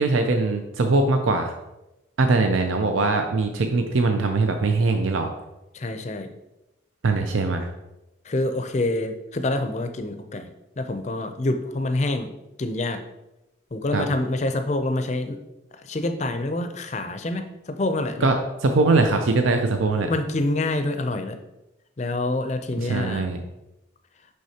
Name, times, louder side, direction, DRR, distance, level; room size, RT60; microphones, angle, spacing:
voice 1, 0.0-1.5 2.2-5.3 7.0-7.7 13.9-14.0 18.2-18.3 18.6-20.1 22.8-23.4, right 3 dB, 85° right, 5 dB, 0.5 m, -21 dB
voice 2, 5.7-6.3 8.3-10.5 10.8-12.3 12.6-13.0 13.7-15.4 15.8-18.3 20.1-21.4 22.0-23.2, left 2 dB, 35° left, 7 dB, 0.5 m, -26 dB
6.2 x 5.8 x 2.8 m, 0.96 s
head